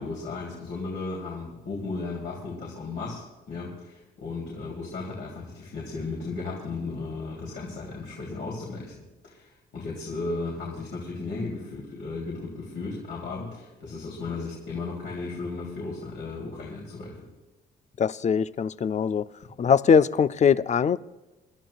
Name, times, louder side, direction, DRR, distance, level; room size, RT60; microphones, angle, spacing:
voice 1, 0.0-9.0 9.2-17.3, left 3 dB, 65° left, 3.0 m, -35 dB
voice 2, 18.0-19.3 19.6-21.0, left 6 dB, 35° left, 0.4 m, -21 dB
25.5 x 12.5 x 2.4 m
cardioid pair, 90°, 20 cm